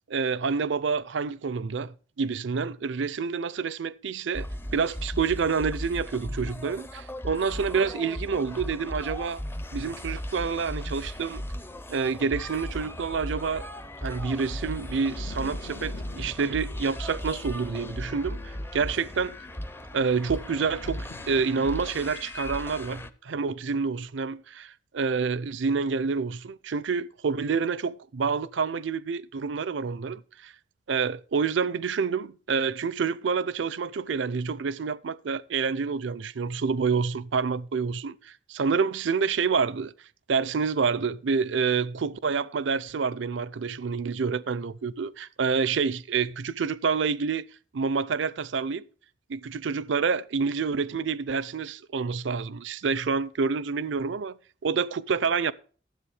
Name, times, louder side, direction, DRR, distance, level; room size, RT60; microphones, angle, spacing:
voice 1, 0.1-4.5 4.7-9.4 9.7-11.4 11.9-13.7 14.0-19.4 19.9-30.5 30.9-39.9 40.3-47.5 47.7-48.8 49.3-54.4 54.6-55.5, right 5 dB, 75° right, 0.5 m, -28 dB
sound 1, 4.3-23.1, equal, 10° left, 0.5 m, -37 dB
sound 2, 15.1-21.7, left 4 dB, 65° left, 0.6 m, -48 dB
12.5 x 7.9 x 4.9 m
head